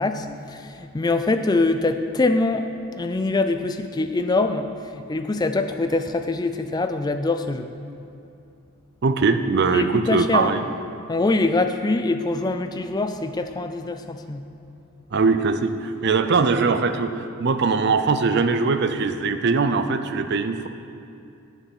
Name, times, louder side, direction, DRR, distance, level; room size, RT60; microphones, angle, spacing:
voice 1, 0.0-7.7 9.7-10.5 11.1-14.5, left 2 dB, 20° left, 8 dB, 0.3 m, -24 dB
voice 2, 9.0-10.6 15.1-20.7, right 4 dB, 50° right, 9 dB, 0.4 m, -21 dB
9.4 x 7.1 x 5.4 m, 2.6 s
head